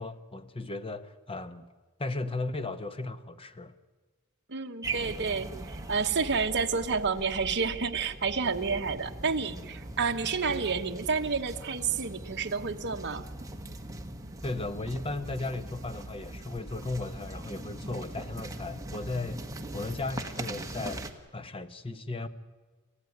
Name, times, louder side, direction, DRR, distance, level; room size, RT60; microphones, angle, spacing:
voice 1, 0.0-1.7 2.0-3.7 14.4-19.5 19.7-22.3, left 2 dB, 25° left, 1.0 m, -36 dB
voice 2, 4.5-13.3, right 5 dB, 50° right, 1.2 m, -30 dB
sound 1, 4.8-21.1, right 2 dB, 15° right, 1.4 m, -41 dB
27.0 x 15.0 x 9.5 m
head